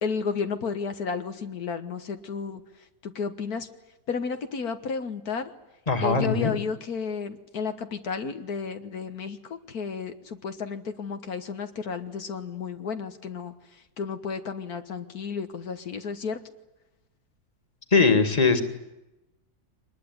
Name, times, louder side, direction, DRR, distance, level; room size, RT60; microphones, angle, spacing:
voice 1, 0.0-2.6 3.0-3.7 4.1-5.5 6.0-16.4, left 5 dB, 80° left, 8 dB, 1.9 m, -32 dB
voice 2, 5.9-6.5 17.9-18.6, left 4 dB, 25° left, 9 dB, 2.2 m, -20 dB
24.0 x 20.5 x 9.5 m, 0.98 s
omnidirectional pair, 1.6 m